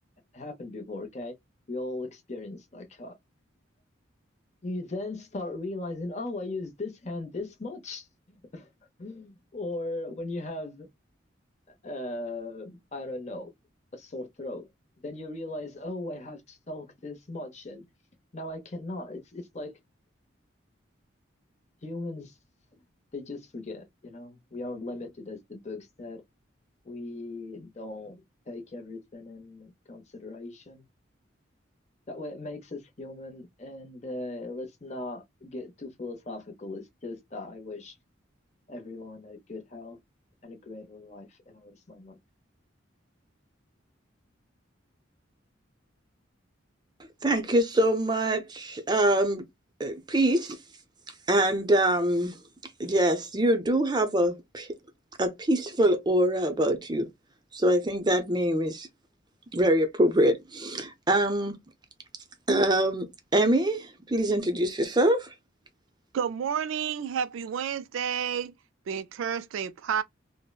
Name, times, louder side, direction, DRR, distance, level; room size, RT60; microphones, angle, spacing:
voice 1, 0.3-1.4 1.7-3.1 4.6-8.7 9.0-10.9 11.7-13.5 13.9-14.7 15.0-17.9 18.3-19.8 21.8-22.4 23.1-26.2 26.8-30.9 32.1-38.0 38.7-40.0 40.4-42.2, left 2 dB, 35° left, 0.7 m, -38 dB
voice 2, 47.2-49.4 49.8-50.6 51.3-52.4 52.8-54.7 55.2-57.1 57.5-58.9 59.5-61.6 62.5-65.3, right 1 dB, 20° right, 0.5 m, -24 dB
voice 3, 66.1-68.5 68.9-70.0, right 7 dB, 80° right, 0.3 m, -30 dB
3.6 x 2.0 x 2.3 m
head